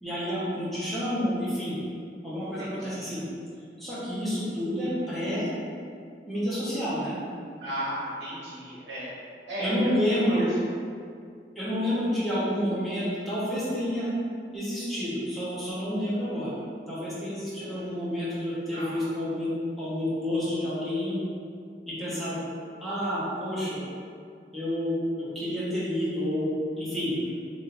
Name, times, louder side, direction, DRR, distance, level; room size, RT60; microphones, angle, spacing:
voice 1, 0.0-1.8 2.2-3.2 3.8-5.5 6.3-7.2 9.6-10.5 11.5-14.1 14.5-16.5 16.9-19.5 19.8-21.2 21.9-22.4 22.8-23.8 24.5-27.1, equal, ahead, -11 dB, 1.2 m, -29 dB
voice 2, 2.6-3.1 4.9-5.0 7.6-9.1 9.5-9.7 10.1-10.6 17.6-17.9 18.7-19.0 27.2-27.3, right 1 dB, 70° right, -9 dB, 1.2 m, -36 dB
6.0 x 2.8 x 2.6 m, 2.3 s
head